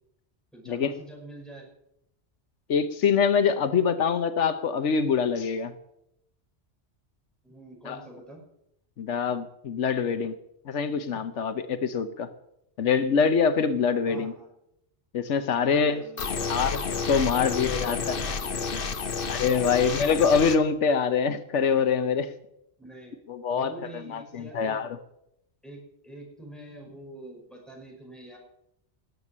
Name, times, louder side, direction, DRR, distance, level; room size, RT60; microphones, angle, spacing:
voice 1, 0.5-1.7 7.4-8.4 14.1-14.5 15.6-16.7 17.2-19.3 22.8-23.2 23.5-24.8 25.6-28.4, right 1 dB, ahead, -1 dB, 5.7 m, -46 dB
voice 2, 2.7-5.7 7.9-8.0 9.0-10.4 10.7-12.3 12.8-14.3 15.1-16.0 16.5-16.8 17.1-18.2 19.3-22.3 23.3-24.9, left 6 dB, 85° left, 10 dB, 1.2 m, -24 dB
sound 1, 16.2-20.6, left 4 dB, 55° left, 1.2 m, -30 dB
19.5 x 8.3 x 7.4 m, 0.79 s
omnidirectional pair, 1.2 m